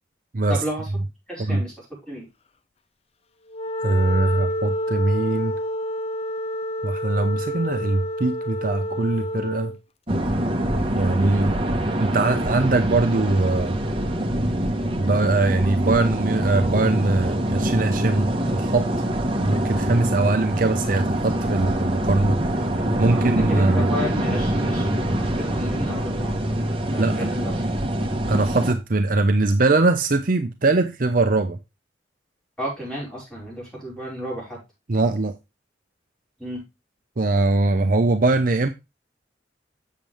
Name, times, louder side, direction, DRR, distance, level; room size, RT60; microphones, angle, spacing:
voice 1, 0.5-0.9 1.3-2.3 23.1-26.3 26.9-27.7 32.6-34.6 36.4-36.6, equal, 5° left, 5.0 m, -32 dB
Wind instrument woodwind instrument, 3.5-9.8, equal, 35° left, 0.5 m, -28 dB
voice 2, 3.8-5.6 6.8-9.7 10.9-11.6 12.0-13.8 15.0-18.9 19.4-23.8 27.0-27.3 28.3-31.6 34.9-35.3 37.2-38.7, right 2 dB, 50° right, 0.7 m, -21 dB
sound 1, 10.1-28.7, right 1 dB, 30° right, 1.2 m, -24 dB
7.5 x 7.4 x 3.3 m
head